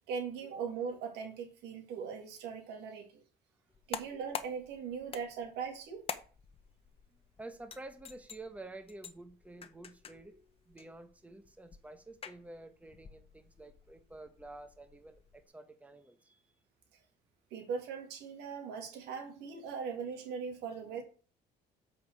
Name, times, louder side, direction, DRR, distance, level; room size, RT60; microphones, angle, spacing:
voice 1, 0.1-3.2 3.9-6.0 17.5-21.0, right 6 dB, 85° right, 2.3 m, -40 dB
sound 1, 3.7-15.5, left 6 dB, 35° left, 0.8 m, -48 dB
voice 2, 7.4-16.5, right 2 dB, 10° right, 1.0 m, -50 dB
7.8 x 5.4 x 4.6 m
cardioid pair, 110°, 17 cm